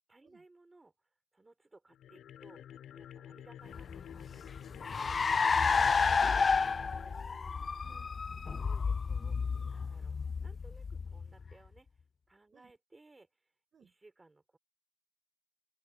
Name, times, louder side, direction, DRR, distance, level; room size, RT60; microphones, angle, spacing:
voice 1, 0.0-5.2 6.9-7.8 8.6-9.4 9.7-13.5 13.8-14.6, right 2 dB, 20° right, 5.2 m, -61 dB
sound 1, 1.9-8.2, left 10 dB, 70° left, 4.1 m, -50 dB
Car, 3.8-11.5, left 5 dB, 35° left, 0.5 m, -31 dB
voice 2, 5.7-7.4 7.8-8.4 12.5-12.7 13.7-13.9, right 7 dB, 50° right, 6.1 m, -60 dB
open air
cardioid pair, 90°, 0 cm